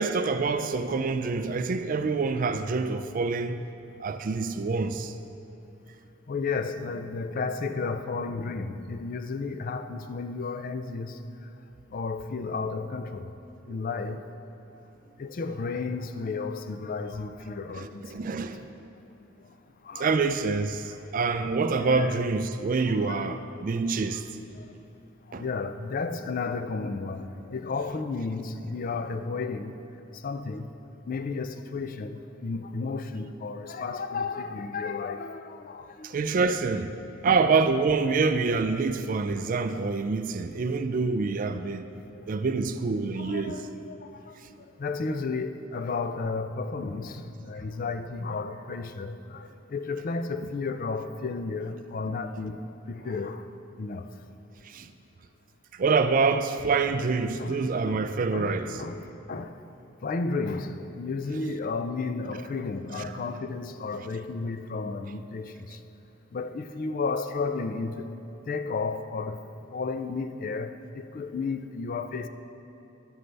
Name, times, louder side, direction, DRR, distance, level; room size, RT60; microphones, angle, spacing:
voice 1, 0.0-3.6 4.0-5.1 13.7-13.8 17.7-18.6 20.0-24.3 25.3-25.4 36.0-37.0 37.2-41.9 42.3-43.6 54.6-54.9 55.7-58.8, right 4 dB, 40° right, 0.4 m, -26 dB
voice 2, 6.3-11.2 11.9-13.3 13.7-14.2 15.2-18.0 18.3-18.5 19.4-19.5 19.8-20.1 21.0-21.1 21.8-22.2 22.9-23.5 24.5-24.7 25.3-29.8 30.1-30.7 31.1-36.1 37.2-37.4 43.2-53.5 53.8-54.1 56.9-57.0 57.4-57.6 57.8-58.1 58.3-59.6 60.0-65.8 66.3-68.1 68.5-72.3, left 4 dB, 45° left, 0.4 m, -33 dB
12.5 x 9.2 x 3.3 m
head